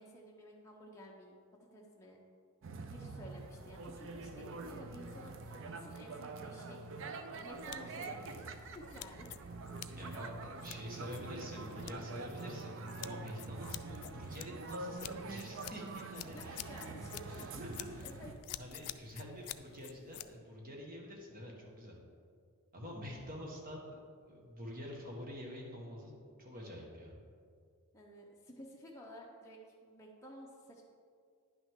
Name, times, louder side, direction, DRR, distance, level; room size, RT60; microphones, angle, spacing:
voice 1, 0.0-1.3 1.6-2.2 2.8-6.9 7.4-9.3 16.3-17.6 18.0-18.3 27.9-30.8, equal, 15° left, -3 dB, 0.7 m, -53 dB
sound 1, 2.6-18.3, right 3 dB, 60° right, 0.5 m, -45 dB
sound 2, 7.3-20.3, left 14 dB, 80° left, 0.3 m, -50 dB
voice 2, 10.0-10.3 10.5-16.6 17.3-18.2 18.6-22.0 22.7-24.0 24.2-26.1 26.4-27.1, equal, 40° right, -1 dB, 1.5 m, -47 dB
10.0 x 6.0 x 3.7 m, 2.1 s
head